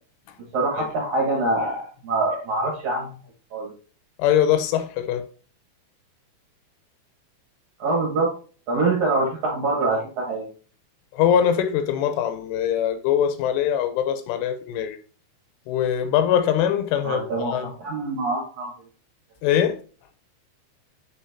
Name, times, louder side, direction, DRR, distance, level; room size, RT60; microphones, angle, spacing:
voice 1, 0.5-3.1 3.5-3.7 7.8-8.3 8.7-10.5 17.0-18.7, right 2 dB, 55° right, 2.2 m, -24 dB
voice 2, 4.2-5.2 11.1-15.0 15.7-17.7 19.4-19.8, left 9 dB, 90° left, 3.3 m, -22 dB
9.0 x 4.3 x 2.7 m
omnidirectional pair, 5.5 m